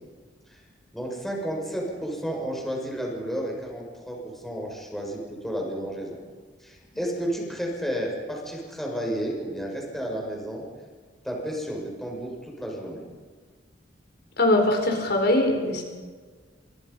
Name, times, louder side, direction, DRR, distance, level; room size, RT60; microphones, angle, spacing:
voice 1, 0.9-6.2 6.6-10.6 11.2-13.0, equal, ahead, -1 dB, 6.8 m, -32 dB
voice 2, 14.4-15.8, left 1 dB, 60° left, 3 dB, 4.8 m, -21 dB
30.0 x 27.5 x 5.7 m, 1.5 s
head